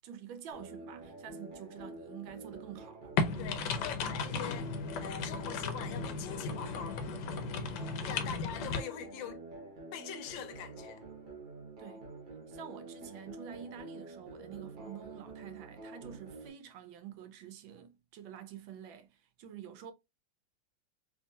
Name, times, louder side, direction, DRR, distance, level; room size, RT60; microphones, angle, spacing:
voice 1, 0.0-3.5 8.2-8.7 11.8-12.1 12.5-19.9, right 9 dB, 80° right, 1.3 m, -48 dB
sound 1, 0.5-16.5, right 2 dB, 40° right, 0.7 m, -48 dB
sound 2, 3.2-8.8, left 4 dB, 70° left, 1.1 m, -35 dB
voice 2, 3.4-4.7 5.0-7.0 8.0-9.4 9.9-11.0, left 9 dB, 85° left, 1.4 m, -43 dB
3.6 x 2.8 x 2.7 m
omnidirectional pair, 2.1 m